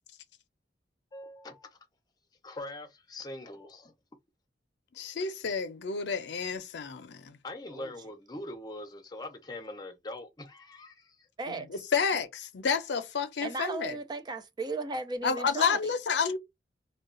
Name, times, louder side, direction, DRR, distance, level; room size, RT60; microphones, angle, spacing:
voice 1, 1.1-1.7 2.4-3.9 7.4-11.2, left 1 dB, 20° left, 0.6 m, -42 dB
voice 2, 5.0-7.4 11.5-14.0 15.2-16.4, left 5 dB, 70° left, 0.5 m, -30 dB
voice 3, 13.4-15.9, right 3 dB, 25° right, 0.4 m, -36 dB
2.3 x 2.2 x 3.7 m
head